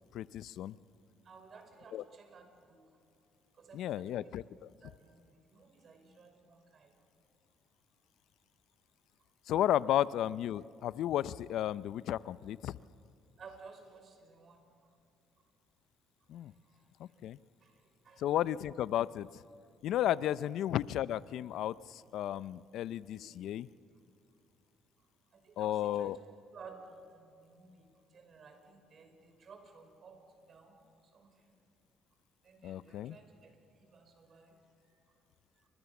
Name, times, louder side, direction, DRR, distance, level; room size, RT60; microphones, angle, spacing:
voice 1, 0.1-0.7 1.9-2.0 3.7-4.7 9.5-12.7 16.3-16.5 17.0-17.4 18.2-19.3 19.8-23.7 25.6-26.2 32.6-33.2, left 12 dB, 70° left, 18 dB, 0.6 m, -33 dB
voice 2, 1.2-2.8 3.6-4.3 4.8-6.9 13.4-14.6 16.7-16.8 17.6-18.2 23.1-23.4 25.3-26.2 26.5-30.8 31.1-31.5 32.4-34.6 35.6-35.7, right 4 dB, 50° right, 5 dB, 5.8 m, -56 dB
29.0 x 25.0 x 7.2 m, 2.5 s
supercardioid pair, 85°, 0 cm